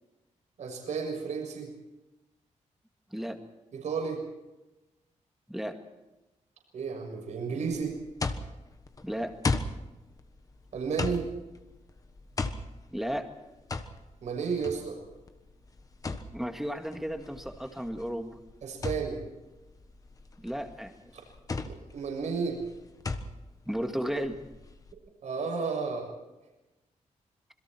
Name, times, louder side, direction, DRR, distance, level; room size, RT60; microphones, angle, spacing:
voice 1, 0.6-1.7 3.7-4.2 6.7-7.9 10.7-11.2 14.2-15.0 18.6-19.2 21.6-22.6 25.2-26.1, right 5 dB, 70° right, 1 dB, 6.7 m, -32 dB
voice 2, 3.1-3.4 5.5-5.8 9.0-9.4 12.9-13.3 16.3-18.4 20.4-20.9 23.7-24.5, equal, ahead, 5 dB, 2.0 m, -34 dB
sound 1, 7.7-24.9, left 3 dB, 30° left, 1.3 m, -37 dB
27.0 x 22.5 x 4.5 m, 1.0 s
wide cardioid pair, 150°, 13 cm